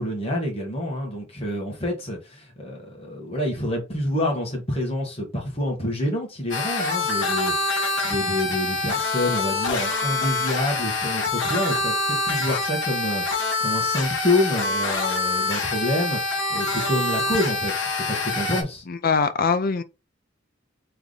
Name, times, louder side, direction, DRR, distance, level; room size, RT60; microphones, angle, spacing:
voice 1, 0.0-16.2 16.5-18.8, left 1 dB, 30° left, 1.6 m, -27 dB
sound 1, 6.5-18.6, left 3 dB, 65° left, 1.3 m, -25 dB
voice 2, 18.9-19.8, left 5 dB, 50° left, 0.5 m, -22 dB
3.5 x 3.3 x 3.9 m
head